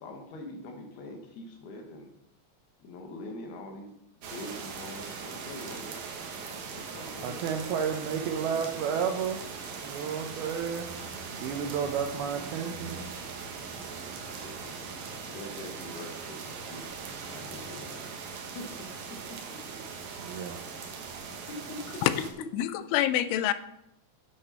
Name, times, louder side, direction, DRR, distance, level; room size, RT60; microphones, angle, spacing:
voice 1, 0.0-2.1 2.8-3.9 4.3-5.9 6.3-7.4 8.3-8.6 8.9-9.0 14.3-14.8 15.2-16.9 17.2-18.0 18.5-19.4 21.1-21.2 21.5-22.0, left 1 dB, 65° left, 3 dB, 3.0 m, -44 dB
sound 1, 4.2-22.3, right 5 dB, 65° right, 2.5 m, -40 dB
voice 2, 7.2-9.4 9.8-10.9 11.4-13.1 20.2-20.6, right 7 dB, 85° right, 5 dB, 2.2 m, -31 dB
voice 3, 22.5-23.5, left 13 dB, 85° left, 13 dB, 3.0 m, -26 dB
8.7 x 8.6 x 5.5 m, 0.83 s
omnidirectional pair, 5.5 m